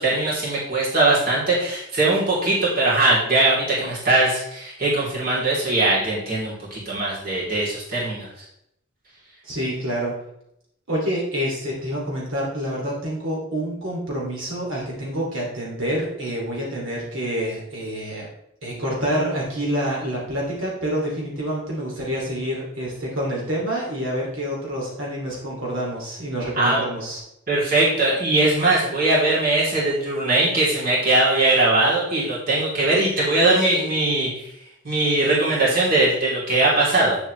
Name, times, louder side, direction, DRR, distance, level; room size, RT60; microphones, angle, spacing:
voice 1, 0.0-8.3 26.6-26.8 27.5-34.5 34.8-37.2, right 2 dB, 45° right, -7 dB, 3.1 m, -20 dB
voice 2, 9.4-10.1 10.9-18.3 18.6-27.2, equal, 85° right, -3 dB, 2.5 m, -27 dB
9.1 x 7.2 x 3.2 m, 0.78 s
head